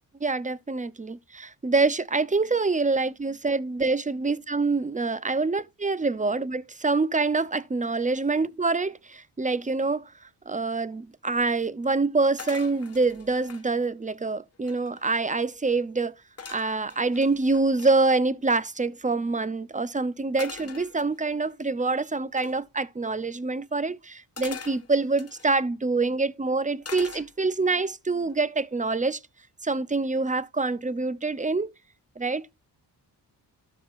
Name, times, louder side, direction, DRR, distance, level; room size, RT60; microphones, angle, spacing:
voice 1, 0.2-16.1 16.5-29.2 29.6-31.7 32.2-32.4, right 3 dB, 15° right, 0.7 m, -26 dB
sound 1, 12.4-13.7 14.3-14.4 14.5-15.2 16.4-17.9 20.4-21.5 22.4-22.6 24.4-25.6 26.8-27.7 28.1-28.5, left 5 dB, 35° left, 1.6 m, -43 dB
13.0 x 5.7 x 2.6 m
cardioid pair, 55°, 43 cm